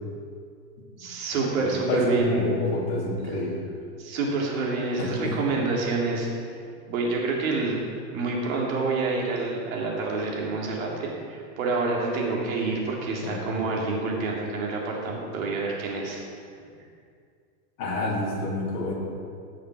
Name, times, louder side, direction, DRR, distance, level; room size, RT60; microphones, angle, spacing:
voice 1, 1.0-2.4 3.3-3.4 4.0-6.3 6.9-7.8 8.1-16.2, right 3 dB, 55° right, -2 dB, 2.8 m, -27 dB
voice 2, 1.6-3.6 5.0-5.3 13.2-13.4 17.8-18.9, left 2 dB, 35° left, -4 dB, 3.1 m, -28 dB
17.0 x 6.5 x 4.8 m, 2.3 s
supercardioid pair, 160°, 50 cm